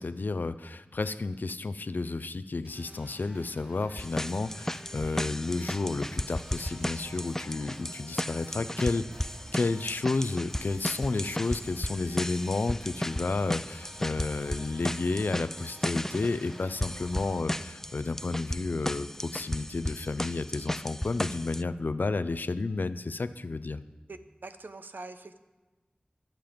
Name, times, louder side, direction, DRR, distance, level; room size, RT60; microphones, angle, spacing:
voice 1, 0.0-9.1 9.5-23.8, left 3 dB, 75° left, 13 dB, 0.6 m, -31 dB
sound 1, 2.6-17.4, equal, 35° right, 3.7 m, -51 dB
sound 2, 4.0-21.6, left 1 dB, 15° left, 0.5 m, -35 dB
voice 2, 24.1-25.4, right 3 dB, 85° right, 9 dB, 0.8 m, -44 dB
22.5 x 7.6 x 5.2 m, 1.2 s
wide cardioid pair, 50°, 3 cm